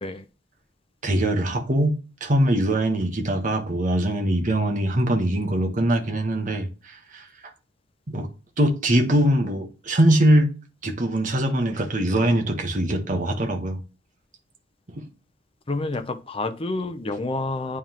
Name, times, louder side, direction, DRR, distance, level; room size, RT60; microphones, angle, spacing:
voice 1, 1.0-7.2 8.1-8.3 8.6-10.5 10.8-13.8 14.9-15.1, right 1 dB, 40° right, 1.2 m, -22 dB
voice 2, 15.7-17.8, left 2 dB, 30° left, 0.7 m, -28 dB
9.4 x 3.6 x 3.0 m
head